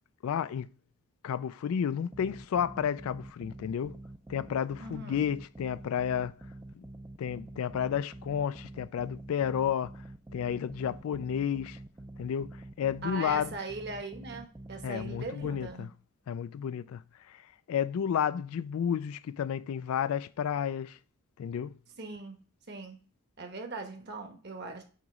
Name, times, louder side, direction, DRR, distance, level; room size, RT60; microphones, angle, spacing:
voice 1, 0.2-0.7 1.2-4.0 4.3-6.3 6.7-6.9 7.2-9.9 10.3-11.8 12.2-13.5 14.8-15.9 16.3-17.0 17.3-17.4 17.7-21.0 21.4-21.7, left 8 dB, 75° left, 0.3 m, -31 dB
sound 1, 2.1-15.7, right 1 dB, 15° right, 0.4 m, -47 dB
voice 2, 4.8-5.2 13.0-15.9 22.0-22.4 22.7-23.0 23.4-24.8, right 3 dB, 45° right, 1.1 m, -40 dB
7.9 x 3.0 x 4.8 m
head